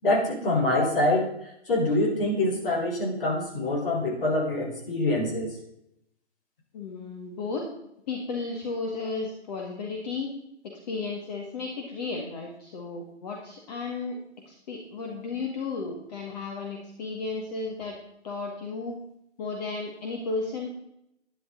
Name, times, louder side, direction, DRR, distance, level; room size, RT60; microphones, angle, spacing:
voice 1, 0.0-1.3 1.7-5.5, left 1 dB, 55° left, 0 dB, 4.5 m, -25 dB
voice 2, 6.7-7.7 8.1-10.3 10.6-14.2 14.5-18.0 18.2-19.0 19.4-20.7, left 4 dB, 35° left, 0 dB, 1.9 m, -34 dB
11.5 x 10.5 x 3.9 m, 0.77 s
hypercardioid pair, 145°, 34 cm